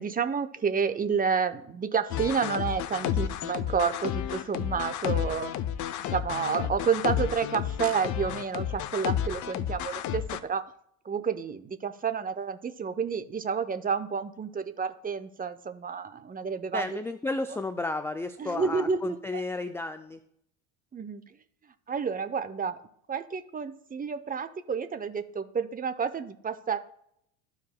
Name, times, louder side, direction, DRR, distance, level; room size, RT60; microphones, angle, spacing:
voice 1, 0.0-5.5 6.1-10.6 11.0-16.9 18.4-19.2 20.9-21.2 21.9-22.8 23.1-26.8, right 6 dB, 20° right, 11 dB, 0.7 m, -30 dB
sound 1, 2.1-10.4, left 10 dB, 45° left, 0.6 m, -31 dB
voice 2, 16.7-20.2, left 2 dB, 5° left, 9 dB, 0.3 m, -33 dB
13.5 x 4.8 x 2.2 m, 0.71 s
hypercardioid pair, 75°, 42 cm